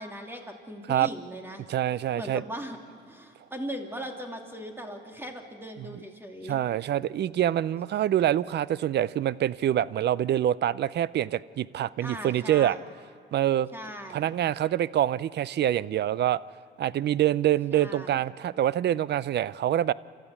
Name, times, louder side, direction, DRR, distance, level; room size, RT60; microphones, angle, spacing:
voice 1, 0.0-1.6 2.1-2.8 3.1-6.6 12.0-12.8 13.7-14.3 17.7-18.2, equal, 10° right, 3 dB, 2.6 m, -39 dB
voice 2, 1.7-2.4 5.8-5.9 6.5-12.8 13.3-13.7 14.1-16.4 16.8-19.9, right 11 dB, 60° right, 20 dB, 0.5 m, -25 dB
29.0 x 13.0 x 8.3 m, 2.1 s
cardioid pair, 90°, 20 cm